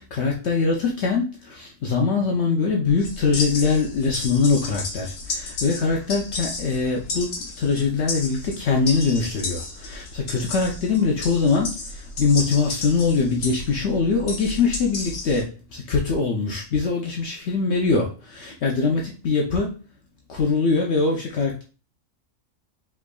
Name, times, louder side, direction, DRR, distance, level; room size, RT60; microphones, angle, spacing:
voice 1, 0.0-19.7 20.3-21.6, left 4 dB, 65° left, 0.9 m, -23 dB
sound 1, 3.0-15.4, left 3 dB, 85° left, 1.3 m, -33 dB
4.8 x 3.6 x 2.3 m
omnidirectional pair, 1.3 m